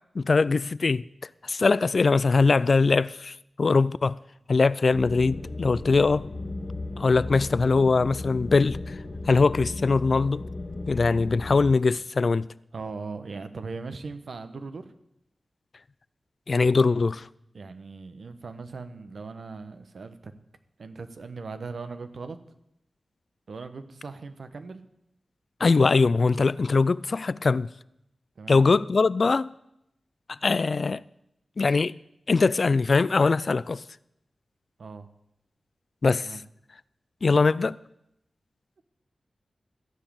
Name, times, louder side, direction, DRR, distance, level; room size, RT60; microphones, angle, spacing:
voice 1, 0.2-1.0 1.4-4.2 4.5-6.3 7.0-8.8 9.3-10.4 10.9-12.5 16.5-17.2 25.6-27.7 28.5-29.5 30.3-31.0 31.6-31.9 32.3-33.8 36.0-36.3 37.2-37.8, left 4 dB, 60° left, 0.3 m, -22 dB
sound 1, 4.9-11.7, left 2 dB, 75° left, 2.8 m, -36 dB
voice 2, 12.7-14.9 17.5-20.3 20.8-22.4 23.5-24.8 28.4-28.6 34.8-35.1 36.2-36.4, right 4 dB, 75° right, 1.0 m, -39 dB
14.5 x 5.2 x 8.6 m
cardioid pair, 45°, 0 cm